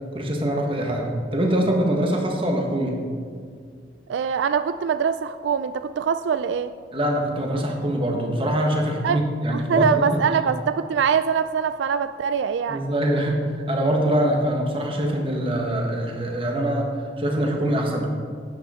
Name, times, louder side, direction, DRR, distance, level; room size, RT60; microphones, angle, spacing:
voice 1, 0.1-3.0 6.9-10.4 12.7-18.1, right 1 dB, 30° right, 1 dB, 1.4 m, -24 dB
voice 2, 4.1-6.7 9.0-9.2 9.5-12.8, right 7 dB, 80° right, 12 dB, 0.3 m, -23 dB
11.0 x 9.0 x 4.3 m, 2.1 s
head